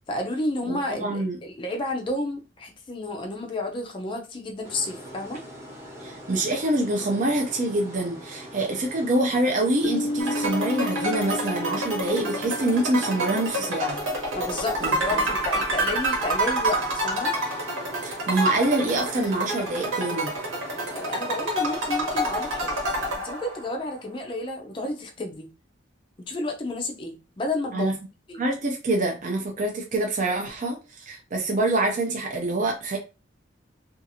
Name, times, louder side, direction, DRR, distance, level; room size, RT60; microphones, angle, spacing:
voice 1, 0.1-5.4 14.3-17.3 20.9-22.8 23.2-25.5 26.3-27.9 28.3-28.4, left 2 dB, 25° left, 0.4 m, -31 dB
voice 2, 0.7-1.4 6.0-14.0 14.8-15.3 18.0-20.3 27.7-27.9 28.3-33.0, right 2 dB, 40° right, 0.5 m, -26 dB
sound 1, 4.6-23.2, right 1 dB, 15° right, 0.8 m, -43 dB
Piano, 9.8-15.2, left 1 dB, 80° left, 0.5 m, -33 dB
sound 2, 10.2-23.8, right 1 dB, 85° right, 1.1 m, -28 dB
2.7 x 2.4 x 2.7 m
head